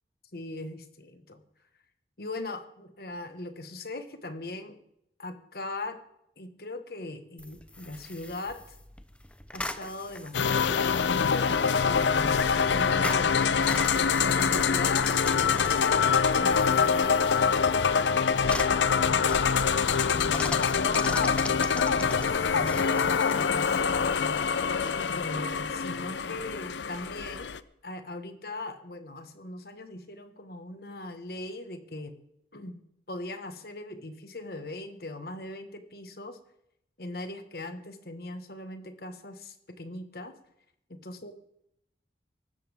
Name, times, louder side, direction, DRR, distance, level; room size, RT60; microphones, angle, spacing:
voice 1, 0.3-1.4 2.2-4.8 5.2-6.0 6.4-8.6 9.5-13.7 14.3-19.4 20.1-24.0 25.1-27.5 27.8-32.1 32.5-32.8 33.1-36.4 37.0-40.3 40.9-41.3, left 2 dB, 60° left, 8 dB, 1.4 m, -40 dB
sound 1, 7.4-25.6, left 1 dB, 5° left, 0.7 m, -42 dB
sound 2, 10.3-27.6, left 6 dB, 90° left, 0.6 m, -25 dB
23.0 x 12.5 x 3.6 m, 0.78 s
head